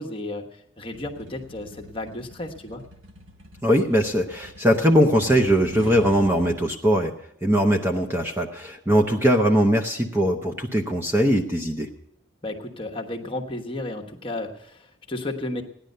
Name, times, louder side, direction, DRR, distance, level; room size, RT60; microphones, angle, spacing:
voice 1, 0.0-2.8 12.4-15.6, left 2 dB, 25° left, 2 dB, 1.2 m, -33 dB
sound 1, 0.9-6.6, right 1 dB, 85° right, 1.5 m, -42 dB
voice 2, 3.6-7.1 7.4-11.9, equal, 10° right, 4 dB, 0.8 m, -21 dB
16.5 x 10.5 x 6.6 m, 0.73 s
head